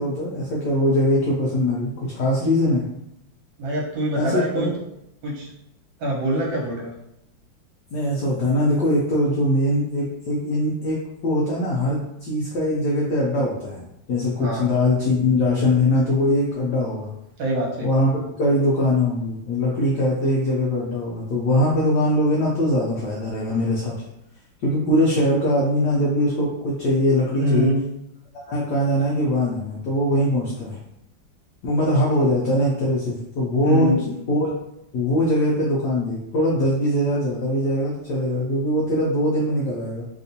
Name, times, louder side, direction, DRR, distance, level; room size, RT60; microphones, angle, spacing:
voice 1, 0.0-2.8 4.2-4.7 7.9-17.1 17.8-23.9 24.6-27.7 28.5-30.8 31.6-33.9 34.3-34.5 34.9-40.0, left 1 dB, 70° left, -4 dB, 1.2 m, -22 dB
voice 2, 3.6-4.7 5.2-5.5 6.0-6.9 14.4-14.7 17.4-18.0 27.4-27.8 33.6-34.1, right 1 dB, 75° right, -4 dB, 1.7 m, -24 dB
3.5 x 2.5 x 2.7 m, 0.81 s
omnidirectional pair, 2.0 m